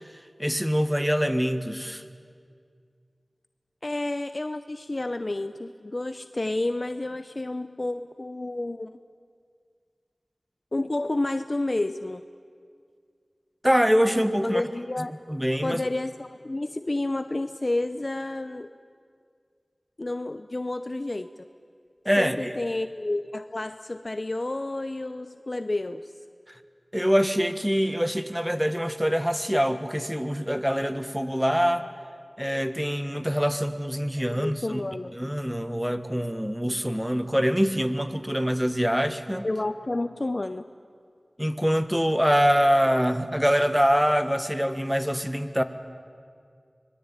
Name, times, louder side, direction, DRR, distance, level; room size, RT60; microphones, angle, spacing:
voice 1, 0.4-2.0 13.6-14.6 15.3-15.8 22.0-22.5 26.9-31.9 32.4-34.8 35.1-39.5 41.4-45.6, equal, 5° right, 10 dB, 1.6 m, -24 dB
voice 2, 3.8-9.0 10.7-12.2 14.4-15.1 15.6-18.7 20.0-21.5 22.2-26.1 34.3-35.1 39.4-40.6, left 2 dB, 50° left, 11 dB, 0.7 m, -30 dB
25.0 x 21.5 x 9.0 m, 2.2 s
wide cardioid pair, 45°, 0 cm